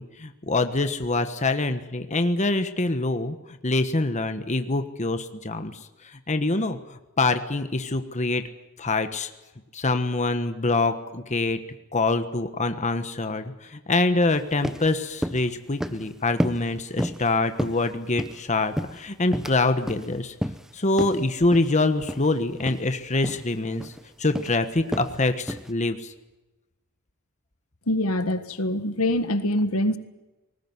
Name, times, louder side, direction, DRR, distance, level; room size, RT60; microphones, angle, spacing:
voice 1, 0.0-3.4 3.6-5.8 6.0-6.8 7.2-8.4 8.8-9.3 9.7-11.6 11.9-20.3 20.7-23.9 24.2-26.1, left 2 dB, 35° left, 9 dB, 1.3 m, -25 dB
sound 1, 14.3-14.4 14.6-14.9 15.2-15.5 15.8-16.1 16.4-16.7 17.0-17.3 17.6-18.4 18.8-19.6 19.9-20.1 20.4-20.7 21.0-21.2 21.5-21.7 22.1-22.3 22.6-22.8 23.2-23.4 23.8-24.0 24.3-24.6 24.9-25.1 25.5-25.7, equal, ahead, 0.8 m, -30 dB
voice 2, 27.9-30.0, left 1 dB, 80° left, 11 dB, 1.6 m, -24 dB
20.0 x 19.5 x 9.6 m, 1.1 s
head